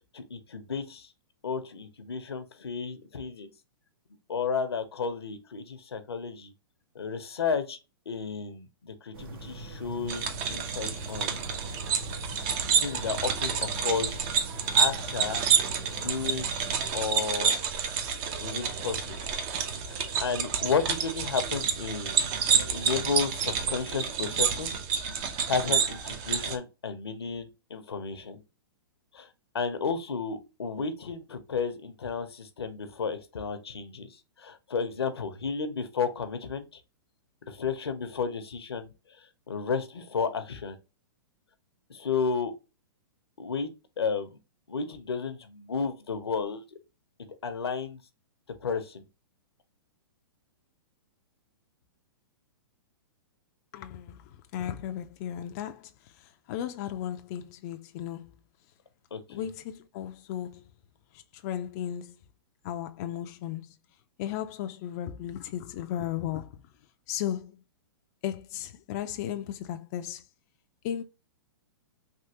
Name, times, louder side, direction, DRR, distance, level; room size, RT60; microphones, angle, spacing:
voice 1, 0.2-1.1 1.4-3.5 4.3-6.5 6.9-7.8 8.1-11.5 12.8-14.2 14.7-15.5 15.9-16.5 16.9-17.6 18.4-19.3 19.9-22.2 22.7-24.7 25.5-28.4 29.1-29.3 29.5-36.8 37.5-40.8 41.9-42.5 43.4-43.7 44.0-44.4 44.7-46.6 47.4-48.0 48.6-49.1 59.1-59.5, left 5 dB, 90° left, 0.8 m, -32 dB
sound 1, 9.1-16.9, right 2 dB, 65° right, 1.2 m, -42 dB
sound 2, 10.1-26.6, right 7 dB, 40° right, 0.7 m, -29 dB
voice 2, 53.7-58.3 59.3-60.6 61.1-62.2 62.6-63.8 64.2-66.6 67.1-67.6 68.2-70.3 70.8-71.0, left 11 dB, 45° left, 0.4 m, -35 dB
3.5 x 2.8 x 2.8 m
hypercardioid pair, 125°, 13 cm